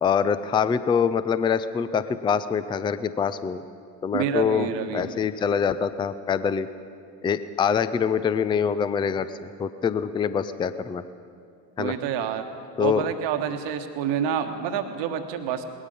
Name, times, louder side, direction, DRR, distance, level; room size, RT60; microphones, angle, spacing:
voice 1, 0.0-3.6 4.0-6.7 7.2-11.0 11.8-11.9 12.8-13.1, left 7 dB, 10° left, 14 dB, 0.4 m, -25 dB
voice 2, 4.1-5.2 11.8-12.4 12.8-15.6, right 8 dB, 60° right, 7 dB, 1.3 m, -28 dB
18.5 x 13.0 x 5.3 m, 2.4 s
hypercardioid pair, 65°, 49 cm